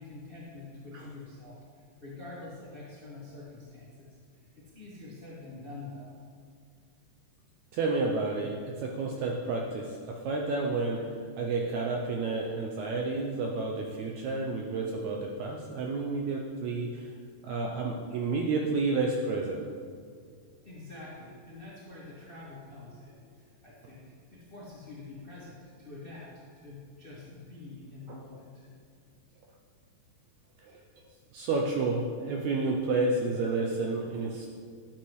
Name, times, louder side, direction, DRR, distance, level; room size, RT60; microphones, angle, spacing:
voice 1, 0.0-4.2 4.5-6.2 18.1-18.2 20.6-28.7, left 2 dB, 80° left, -7 dB, 0.5 m, -46 dB
voice 2, 7.7-17.1 17.4-19.6 28.1-28.2 30.6-30.8 31.3-34.5, right 3 dB, 80° right, 0 dB, 1.7 m, -30 dB
11.5 x 7.4 x 3.1 m, 2.1 s
omnidirectional pair, 3.9 m